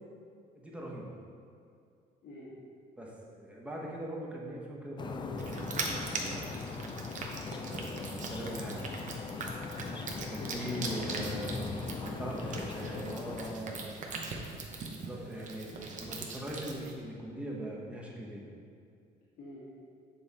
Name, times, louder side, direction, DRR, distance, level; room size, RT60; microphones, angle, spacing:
voice 1, 0.5-1.2 3.0-6.5 7.6-9.1 10.1-11.6 12.0-13.9 14.8-18.5, right 1 dB, 5° right, -3 dB, 1.0 m, -41 dB
voice 2, 2.2-2.5 10.1-13.1 14.3-14.4 15.1-15.3 19.4-19.6, left 1 dB, 65° left, -9 dB, 1.4 m, -50 dB
sound 1, 5.0-13.6, left 5 dB, 25° left, 0.3 m, -40 dB
sound 2, 5.4-16.9, right 3 dB, 45° right, 0.8 m, -41 dB
7.0 x 3.4 x 4.1 m, 2.4 s
cardioid pair, 110°, 17 cm